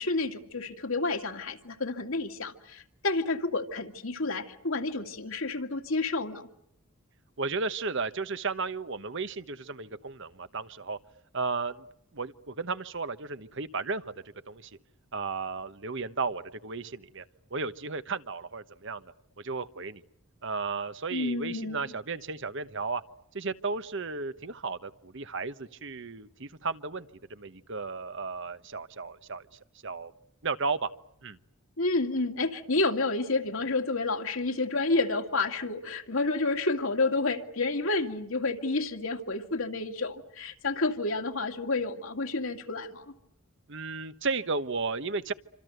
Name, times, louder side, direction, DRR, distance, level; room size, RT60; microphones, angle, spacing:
voice 1, 0.0-6.5 21.1-21.8 31.8-43.1, left 3 dB, 70° left, 5 dB, 2.4 m, -30 dB
voice 2, 7.4-11.0 11.3-11.8 12.1-14.0 14.5-14.7 15.1-17.2 17.5-19.0 19.4-20.0 20.4-23.0 23.3-29.4 29.8-30.1 30.4-30.9 31.2-31.4 43.7-45.3, right 4 dB, 60° right, 12 dB, 1.2 m, -34 dB
27.5 x 26.5 x 8.0 m, 0.76 s
head